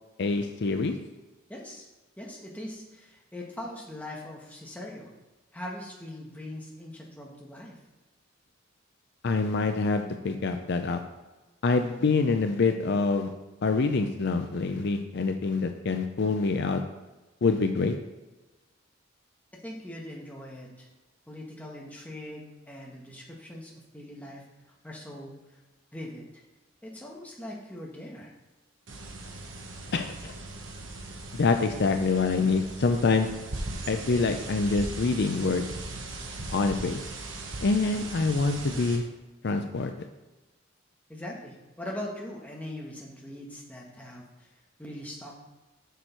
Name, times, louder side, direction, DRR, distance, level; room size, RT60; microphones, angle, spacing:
voice 1, 0.2-0.9 9.2-11.0 11.6-13.3 13.6-16.8 17.4-17.9 29.9-30.3 31.3-33.3 33.9-35.7 36.5-37.0 37.6-39.0 39.4-39.9, left 4 dB, 55° left, 6 dB, 0.5 m, -26 dB
voice 2, 1.5-1.9 2.2-5.1 5.5-7.8 19.6-20.9 21.3-24.4 24.8-25.4 25.9-26.4 26.8-28.3 41.1-44.5 44.8-45.4, left 1 dB, 10° left, -2 dB, 1.3 m, -41 dB
sound 1, 28.9-39.0, right 2 dB, 65° right, 1.1 m, -39 dB
6.9 x 6.2 x 4.4 m, 1.1 s
head